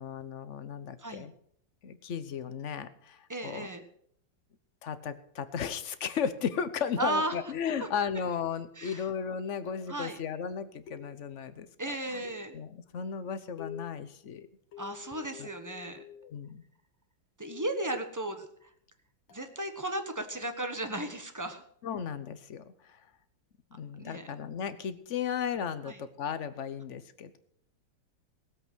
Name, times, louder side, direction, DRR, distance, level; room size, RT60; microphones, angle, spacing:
voice 1, 0.0-1.3 1.8-3.7 4.8-11.7 12.1-12.2 12.5-14.5 15.4-15.5 16.2-16.6 21.8-22.7 23.7-27.4, left 7 dB, 50° left, 12 dB, 1.0 m, -35 dB
voice 2, 3.3-3.8 7.0-7.3 7.8-7.9 8.8-9.1 9.9-10.2 11.8-12.5 14.8-16.0 17.4-18.7 19.3-21.6 24.0-24.3 25.8-26.0, right 1 dB, 10° right, 7 dB, 1.0 m, -35 dB
sound 1, 9.7-10.0 10.9-11.5 12.2-12.7 13.6-14.1 14.7-16.4 17.4-17.9 19.3-19.5, left 9 dB, 85° left, 2.3 m, -49 dB
18.5 x 8.0 x 6.2 m, 0.67 s
omnidirectional pair, 2.1 m